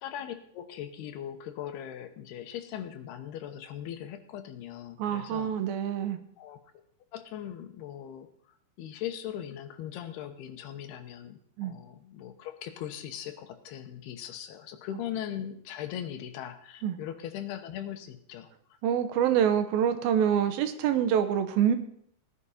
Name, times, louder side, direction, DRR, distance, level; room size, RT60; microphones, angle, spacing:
voice 1, 0.0-5.6 6.4-6.6 7.1-18.5, left 10 dB, 75° left, 7 dB, 3.0 m, -40 dB
voice 2, 5.0-6.2 11.6-11.7 16.8-17.0 18.8-21.8, right 9 dB, 75° right, 9 dB, 2.5 m, -26 dB
17.0 x 10.5 x 4.2 m, 0.66 s
omnidirectional pair, 4.8 m